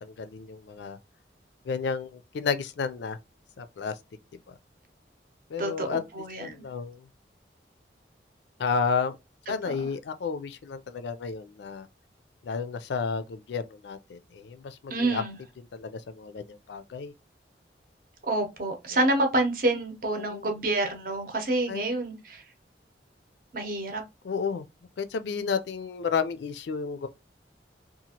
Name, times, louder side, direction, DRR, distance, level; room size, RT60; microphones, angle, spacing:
voice 1, 0.0-1.0 1.6-3.2 3.6-3.9 4.5-4.6 5.5-6.0 6.4-7.1 8.6-9.2 9.5-11.9 12.4-15.2 15.6-17.1 18.9-19.0 20.2-20.5 21.7-21.8 24.2-24.7 25.0-27.1, left 5 dB, 70° left, 0.4 m, -32 dB
voice 2, 5.6-6.6 14.9-15.4 18.2-22.4 23.5-24.0, right 2 dB, 50° right, 0.7 m, -28 dB
2.8 x 2.4 x 2.8 m
head